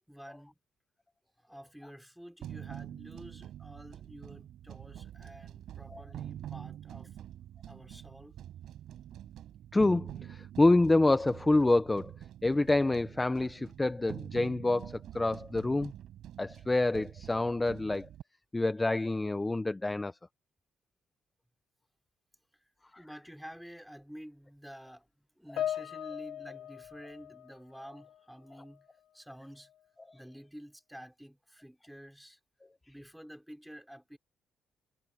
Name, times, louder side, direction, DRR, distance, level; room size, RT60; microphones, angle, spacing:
voice 1, 0.1-0.6 1.4-7.1 7.7-8.4 23.0-25.1 25.4-28.9 29.1-29.7 30.1-32.4 32.9-34.2, equal, ahead, 3.7 m, -50 dB
sound 1, 2.4-18.2, right 11 dB, 75° right, 6.7 m, -46 dB
voice 2, 9.7-12.1 12.4-15.9 16.4-18.1 18.5-20.1, left 2 dB, 15° left, 1.0 m, -27 dB
Piano, 25.6-28.2 28.5-28.8 29.6-29.7, left 11 dB, 80° left, 1.2 m, -39 dB
cardioid pair, 90°, 0 cm